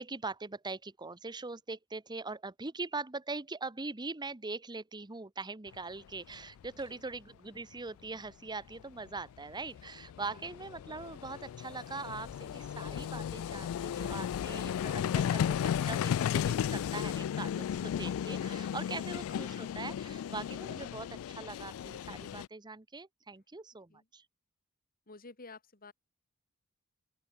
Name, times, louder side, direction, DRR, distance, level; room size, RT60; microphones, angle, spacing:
voice 1, 0.0-24.2, right 3 dB, 20° right, 0.9 m, -42 dB
Vehicle, 6.3-6.4 6.6-6.8 8.8-8.9 9.1-22.5, left 9 dB, 65° left, 0.3 m, -35 dB
voice 2, 25.1-25.9, left 3 dB, 40° left, 2.6 m, -51 dB
open air
head